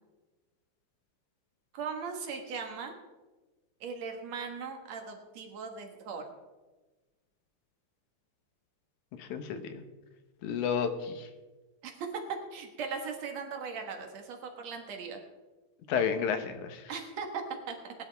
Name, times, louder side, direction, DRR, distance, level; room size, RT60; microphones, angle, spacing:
voice 1, 1.7-2.9 3.8-6.2 11.8-11.9 12.3-15.2 16.9-17.9, right 5 dB, 65° right, 4 dB, 2.5 m, -38 dB
voice 2, 9.2-9.8 10.4-11.3 15.9-16.8, left 7 dB, 85° left, 8 dB, 2.5 m, -31 dB
19.5 x 11.0 x 3.5 m, 1.2 s
omnidirectional pair, 3.4 m